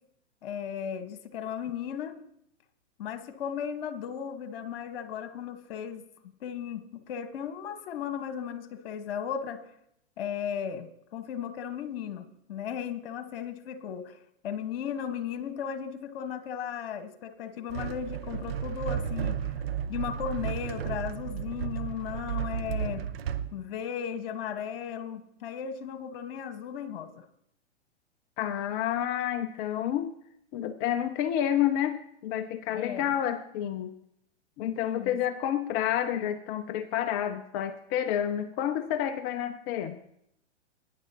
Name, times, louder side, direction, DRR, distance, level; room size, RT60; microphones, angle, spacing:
voice 1, 0.4-2.1 3.0-6.0 6.4-9.6 10.2-14.2 14.4-19.5 19.9-23.0 23.5-27.2 32.7-33.2 34.8-35.2, left 8 dB, 55° left, 9 dB, 1.5 m, -36 dB
sound 1, 17.7-23.5, right 8 dB, 55° right, 0.9 m, -33 dB
voice 2, 28.4-30.1 30.5-33.9 34.6-40.0, left 10 dB, 20° left, 9 dB, 0.4 m, -29 dB
18.5 x 10.0 x 2.9 m, 0.73 s
hypercardioid pair, 120°, 35 cm